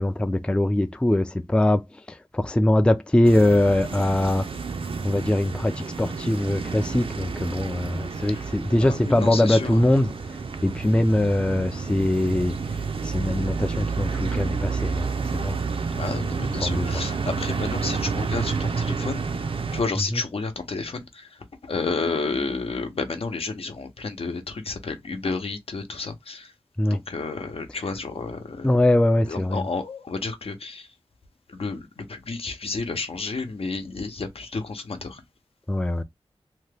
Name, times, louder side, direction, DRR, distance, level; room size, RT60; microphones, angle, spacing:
voice 1, 0.0-4.5 5.0-10.4 10.6-12.6 13.0-15.6 16.6-16.9 20.1-20.2 26.8-27.0 28.6-29.7 35.7-36.0, left 1 dB, 10° left, 0.3 m, -22 dB
sound 1, 3.2-19.8, right 5 dB, 60° right, 0.5 m, -30 dB
voice 2, 8.7-9.9 15.9-19.3 19.7-26.5 26.9-28.7 29.3-30.9 31.5-35.2, left 3 dB, 70° left, 0.7 m, -31 dB
2.8 x 2.2 x 3.3 m
wide cardioid pair, 85°, 10 cm